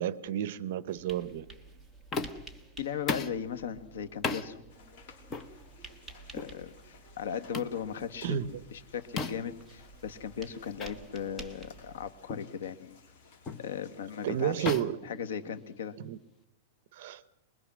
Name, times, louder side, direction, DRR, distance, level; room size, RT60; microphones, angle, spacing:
voice 1, 0.0-1.4 8.2-8.6 14.2-15.0 16.0-16.2 16.9-17.2, right 10 dB, 45° right, 17 dB, 1.0 m, -31 dB
sound 1, 0.9-12.1, right 3 dB, ahead, 1.3 m, -52 dB
sound 2, 2.1-2.5 3.1-3.4 4.2-4.5 5.3-5.5 6.3-6.6 7.5-7.8 9.2-9.6 10.8-10.9 11.4-11.5 12.3-12.5 13.5-13.7 14.7-15.9, left 4 dB, 15° left, 1.0 m, -35 dB
voice 2, 2.8-4.6 6.3-13.0 13.6-14.7 15.0-16.0, left 8 dB, 75° left, 11 dB, 1.8 m, -37 dB
sound 3, 4.7-14.7, left 5 dB, 45° left, 3.9 m, -59 dB
24.5 x 21.0 x 6.3 m, 0.87 s
supercardioid pair, 170°, 0 cm